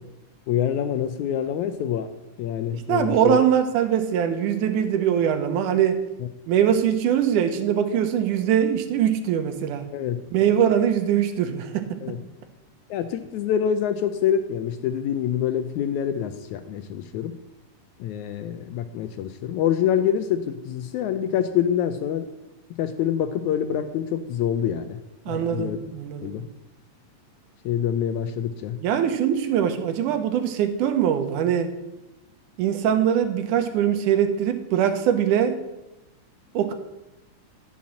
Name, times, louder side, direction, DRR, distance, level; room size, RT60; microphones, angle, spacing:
voice 1, 0.5-2.1 2.4-3.4 6.2-6.3 9.9-10.2 12.0-12.2 12.9-17.4 18.0-22.3 22.8-25.0 25.3-25.8 26.2-26.5 27.6-28.8, left 9 dB, 80° left, 10 dB, 1.8 m, -26 dB
voice 2, 2.9-6.0 6.5-9.9 10.3-12.0 25.3-26.4 28.8-31.8 32.6-35.6 36.5-36.7, right 9 dB, 75° right, 8 dB, 2.3 m, -22 dB
11.5 x 5.8 x 7.5 m, 0.96 s
omnidirectional pair, 3.8 m